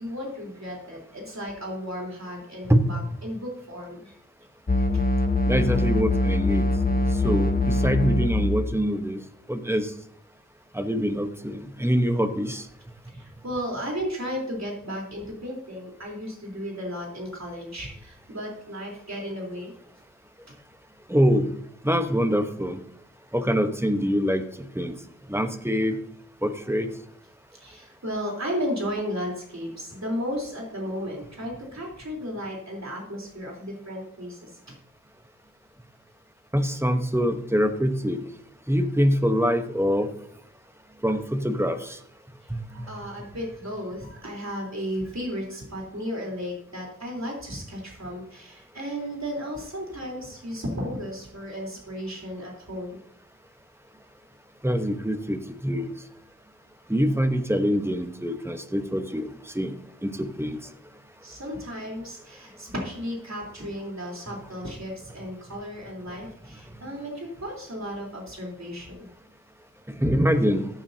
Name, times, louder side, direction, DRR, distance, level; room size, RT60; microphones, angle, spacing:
voice 1, 0.0-4.2 4.8-4.9 13.1-19.7 27.6-34.8 42.7-53.0 61.2-69.1, equal, 60° right, -2 dB, 3.7 m, -34 dB
sound 1, 4.7-8.8, left 2 dB, 30° left, 0.8 m, -23 dB
voice 2, 5.5-6.6 7.2-9.2 9.5-9.9 10.7-12.7 21.1-21.5 21.8-22.8 23.3-24.4 24.7-25.0 25.3-26.0 26.4-26.9 36.5-38.2 38.7-40.1 41.0-42.0 42.5-42.9 54.6-55.9 56.9-59.7 60.0-60.6 70.0-70.7, equal, 10° right, 7 dB, 1.1 m, -24 dB
14.5 x 9.1 x 2.8 m, 0.65 s
wide cardioid pair, 50°, 31 cm